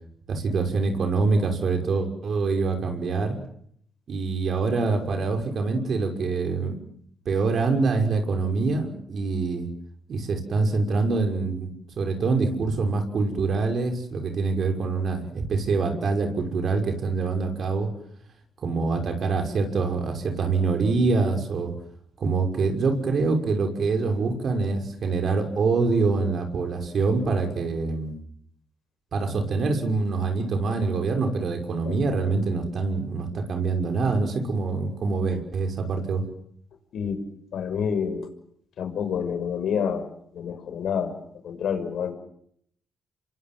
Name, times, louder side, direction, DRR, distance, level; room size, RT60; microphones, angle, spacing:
voice 1, 0.3-3.4 4.1-6.8 7.2-9.7 10.1-11.7 12.0-17.9 18.6-21.7 22.2-28.1 29.1-36.2, right 4 dB, 55° right, 5 dB, 6.0 m, -25 dB
voice 2, 37.5-38.3 38.8-42.1, left 7 dB, 70° left, 7 dB, 6.3 m, -28 dB
27.5 x 23.5 x 7.8 m, 0.68 s
cardioid pair, 90°, 0 cm